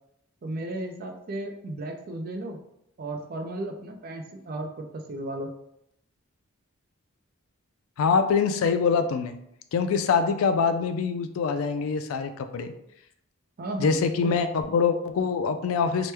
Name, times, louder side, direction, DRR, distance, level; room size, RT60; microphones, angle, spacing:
voice 1, 0.4-2.6 3.0-5.5 13.6-14.6, right 1 dB, 45° right, 4 dB, 0.4 m, -34 dB
voice 2, 8.0-9.4 9.7-12.7 13.8-16.1, left 5 dB, 80° left, 9 dB, 0.3 m, -24 dB
2.9 x 2.1 x 3.3 m, 0.77 s
head